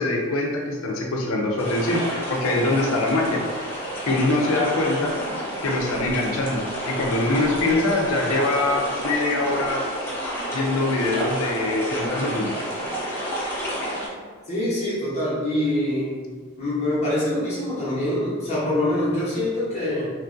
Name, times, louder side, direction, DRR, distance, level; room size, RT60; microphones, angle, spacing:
voice 1, 0.0-2.0 2.3-3.4 4.0-5.2 5.6-9.9 10.5-12.5, left 2 dB, 65° left, 0 dB, 0.5 m, -23 dB
sound 1, 1.6-14.1, equal, 10° left, 0.5 m, -30 dB
voice 2, 14.4-16.2 16.6-20.1, left 1 dB, 30° left, -10 dB, 0.9 m, -24 dB
3.0 x 2.4 x 2.5 m, 1.5 s
head